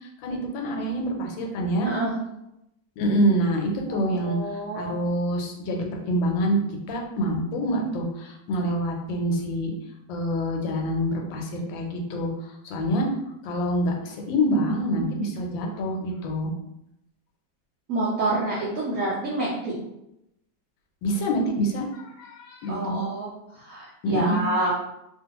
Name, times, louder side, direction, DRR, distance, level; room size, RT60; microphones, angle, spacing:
voice 1, 0.2-1.9 3.0-9.7 10.1-12.3 12.6-13.1 13.4-16.5 21.0-23.0 24.0-24.4, equal, 85° left, 1 dB, 1.4 m, -26 dB
voice 2, 1.8-2.1 3.9-5.0 17.9-19.7 22.7-23.3 23.5-24.7, right 2 dB, 70° right, -6 dB, 0.8 m, -28 dB
3.0 x 2.4 x 2.8 m, 0.85 s
omnidirectional pair, 2.0 m